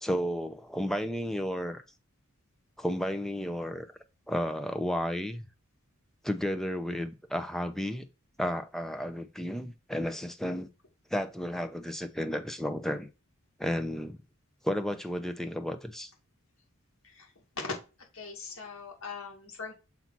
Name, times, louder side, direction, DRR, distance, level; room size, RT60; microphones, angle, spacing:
voice 1, 0.0-1.8 2.8-3.9 4.3-5.4 6.2-8.0 8.4-10.7 11.1-13.1 13.6-14.2 14.6-16.1, equal, ahead, 0.6 m, -32 dB
voice 2, 18.1-19.7, left 4 dB, 65° left, 2.4 m, -39 dB
7.1 x 2.8 x 5.9 m
head